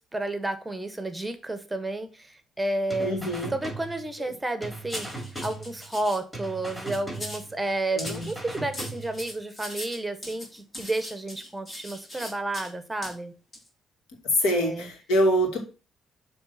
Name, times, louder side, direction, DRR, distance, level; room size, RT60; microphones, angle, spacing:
voice 1, 0.1-3.2 3.5-13.3 14.6-14.9, right 2 dB, 10° right, 1.1 m, -31 dB
sound 1, 2.9-4.3 4.6-6.1 6.3-7.8 8.0-9.4, right 2 dB, 5° left, 3.7 m, -39 dB
voice 2, 3.0-3.5 4.2-4.3 7.9-8.3 14.4-15.6, right 1 dB, 85° left, 2.2 m, -25 dB
sound 2, 4.9-6.2 6.6-7.5 8.0-12.7 13.0-13.1 13.5-13.7, left 1 dB, 30° left, 3.1 m, -40 dB
7.0 x 3.5 x 5.7 m
cardioid pair, 90°, 0 cm